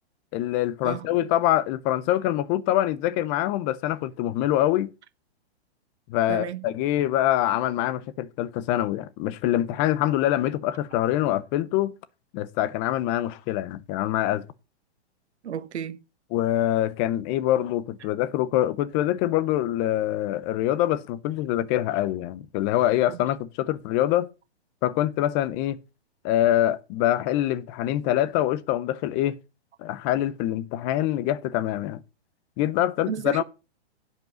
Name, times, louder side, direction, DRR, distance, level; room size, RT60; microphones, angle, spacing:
voice 1, 0.3-4.9 6.1-11.9 12.3-14.5 16.3-24.3 24.8-25.8 26.2-29.4 29.8-32.0 32.6-33.4, left 13 dB, 20° left, 0.4 m, -25 dB
voice 2, 6.3-6.7 15.4-16.0 23.1-23.2 33.1-33.4, right 9 dB, 85° right, 1.0 m, -32 dB
10.5 x 5.4 x 6.2 m
hypercardioid pair, 145°, 33 cm